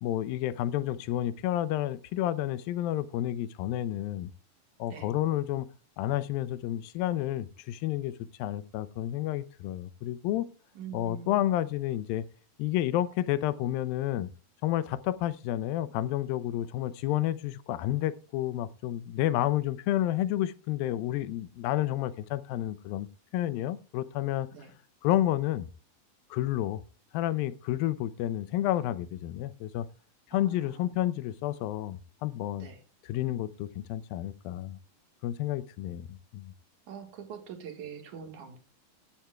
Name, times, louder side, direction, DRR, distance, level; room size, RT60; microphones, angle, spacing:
voice 1, 0.0-4.3 4.8-5.7 6.0-8.1 8.4-10.5 10.9-12.2 12.6-14.3 14.6-23.1 23.3-24.5 25.0-25.7 26.3-26.8 27.1-29.9 30.3-32.7 33.0-34.8 35.2-36.5, left 13 dB, 85° left, 2.5 m, -30 dB
voice 2, 10.8-11.4 24.5-24.7 30.3-30.9 32.6-32.8 36.9-38.6, right 7 dB, 65° right, 2.9 m, -44 dB
16.5 x 12.0 x 2.3 m
omnidirectional pair, 4.1 m